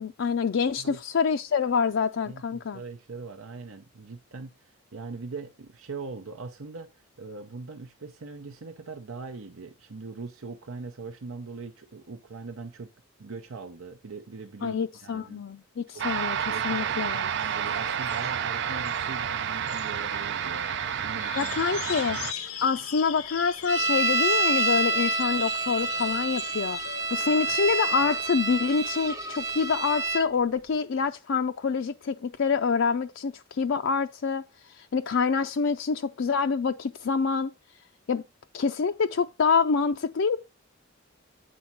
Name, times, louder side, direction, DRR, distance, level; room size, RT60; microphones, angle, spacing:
voice 1, 0.0-2.8 14.6-16.4 16.6-17.3 21.4-22.2 22.6-34.4 34.7-37.5 38.1-38.2 38.5-40.4, left 5 dB, 60° left, 0.4 m, -26 dB
voice 2, 2.2-12.9 13.2-15.4 15.9-16.1 16.5-21.5 21.9-22.2 27.5-27.6, right 4 dB, 75° right, 0.8 m, -41 dB
sound 1, 16.0-22.3, right 8 dB, 55° right, 0.4 m, -30 dB
sound 2, 17.4-28.5, left 8 dB, 85° left, 0.8 m, -41 dB
sound 3, 23.7-30.3, right 3 dB, 15° right, 0.6 m, -27 dB
8.6 x 4.2 x 5.9 m
head